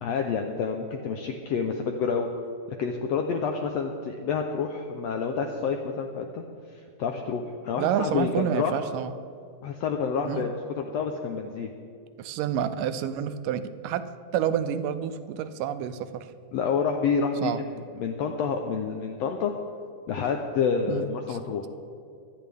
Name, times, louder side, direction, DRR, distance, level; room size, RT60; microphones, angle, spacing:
voice 1, 0.0-2.3 2.8-6.4 7.0-8.8 9.6-11.7 16.5-17.7 18.0-19.5 20.1-21.7, left 6 dB, 85° left, 3 dB, 1.4 m, -28 dB
voice 2, 7.8-9.1 10.2-10.5 12.2-14.0 14.3-16.3 17.4-17.6 20.9-21.4, right 9 dB, 85° right, 11 dB, 2.2 m, -29 dB
23.5 x 9.6 x 3.5 m, 2.4 s
omnidirectional pair, 3.8 m